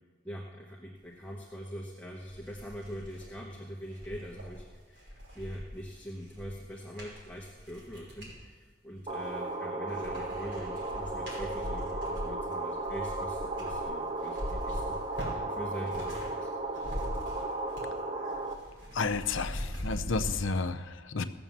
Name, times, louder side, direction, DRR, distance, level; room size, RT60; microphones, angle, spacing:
voice 1, 0.2-15.2 15.5-16.5, equal, 10° left, -2 dB, 1.1 m, -43 dB
sound 1, 1.7-1.8 2.2-8.4 9.0-9.6 9.9-16.3 16.6-18.0 18.2-20.3, equal, 55° right, 5.4 m, -41 dB
sound 2, 9.1-18.5, right 2 dB, 30° right, 0.9 m, -35 dB
voice 2, 18.9-21.2, left 4 dB, 75° left, 8 dB, 0.7 m, -31 dB
16.5 x 7.0 x 7.3 m, 1.4 s
head